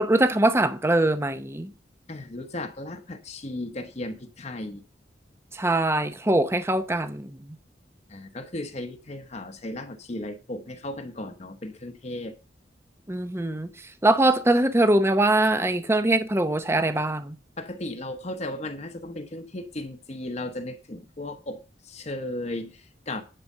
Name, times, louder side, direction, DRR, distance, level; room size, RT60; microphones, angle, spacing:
voice 1, 0.0-1.7 5.5-7.6 13.1-13.7 14.0-17.4, right 1 dB, 15° right, 0.7 m, -22 dB
voice 2, 2.1-4.8 8.1-12.4 17.6-23.2, left 1 dB, 40° left, 1.0 m, -35 dB
10.0 x 4.9 x 6.6 m
head